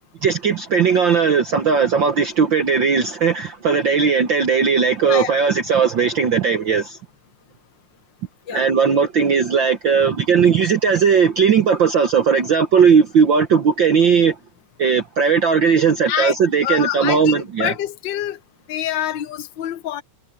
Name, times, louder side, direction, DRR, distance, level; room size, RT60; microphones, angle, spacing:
voice 1, 0.2-7.0 8.5-14.4 14.8-17.7, right 6 dB, 60° right, 1.3 m, -17 dB
voice 2, 5.0-5.4 8.5-8.6 16.1-16.4 16.6-18.4 18.7-20.0, left 11 dB, 50° left, 1.5 m, -25 dB
omnidirectional pair, 3.5 m